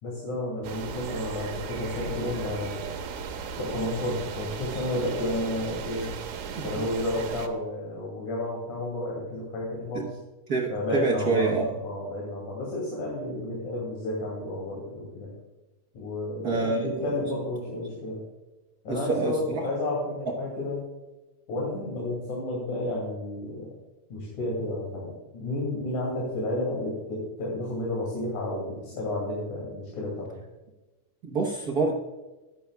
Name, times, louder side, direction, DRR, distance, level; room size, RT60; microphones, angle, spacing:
voice 1, 0.0-2.8 3.6-6.1 6.6-10.1 10.7-15.3 15.9-18.2 18.8-20.8 21.5-23.7 24.1-30.3, left 1 dB, 80° left, -4 dB, 4.0 m, -31 dB
sound 1, 0.6-7.5, right 5 dB, 80° right, 2.3 m, -36 dB
voice 2, 10.5-11.7 16.4-17.2 18.9-19.6 31.2-31.9, right 3 dB, 55° right, -1 dB, 1.0 m, -27 dB
14.0 x 10.0 x 2.3 m, 1.1 s
omnidirectional pair, 3.3 m